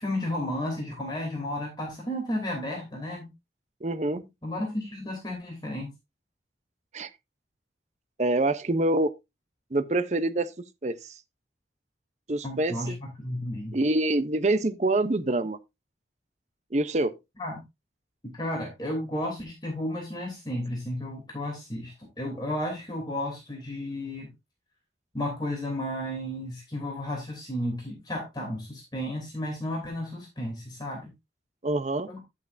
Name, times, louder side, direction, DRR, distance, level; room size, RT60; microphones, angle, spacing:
voice 1, 0.0-3.3 4.4-5.9 12.4-13.8 17.4-17.6 18.3-24.3 25.1-31.1 32.1-32.2, left 1 dB, 25° left, 3.0 m, -33 dB
voice 2, 3.8-4.3 6.9-7.1 8.2-9.1 9.7-10.5 10.8-11.1 12.3-13.0 13.7-15.6 16.7-17.2 31.6-32.1, right 2 dB, 40° right, 0.7 m, -26 dB
10.5 x 8.5 x 2.6 m
head